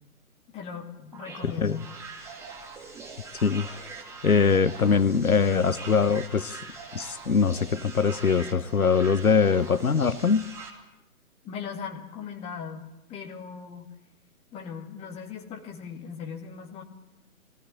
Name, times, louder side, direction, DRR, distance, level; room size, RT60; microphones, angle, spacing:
voice 1, 0.5-2.0 2.4-2.6 11.4-13.9 14.5-16.8, left 6 dB, 15° left, 2.3 m, -39 dB
sound 1, 1.1-10.7, right 4 dB, 5° right, 2.3 m, -42 dB
voice 2, 1.4-1.8 3.4-3.7 4.2-6.6 6.9-10.4, left 5 dB, 75° left, 1.0 m, -22 dB
22.5 x 16.5 x 9.0 m
figure-of-eight pair, 130°, 43 cm